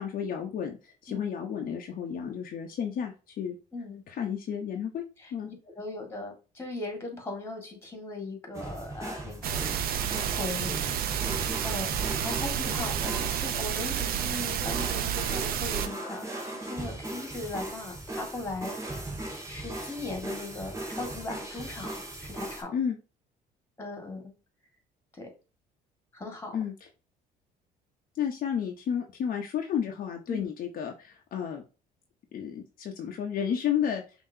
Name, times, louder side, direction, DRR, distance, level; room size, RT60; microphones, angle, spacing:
voice 1, 0.0-3.6 4.1-5.0 5.3-5.5 22.7-23.0 26.5-26.7 28.1-31.6 32.3-34.0, left 8 dB, 55° left, 2 dB, 0.9 m, -32 dB
voice 2, 3.7-4.0 5.2-5.3 5.8-10.8 11.6-18.7 19.5-22.8 23.8-24.2 25.1-25.3 26.1-26.6 30.3-30.5, left 2 dB, 15° left, 3 dB, 2.0 m, -38 dB
sound 1, 8.5-22.6, right 1 dB, 15° right, 1.7 m, -38 dB
sound 2, 9.4-15.9, right 9 dB, 60° right, 0.7 m, -30 dB
5.6 x 3.0 x 2.8 m, 0.32 s
cardioid pair, 110°, 17 cm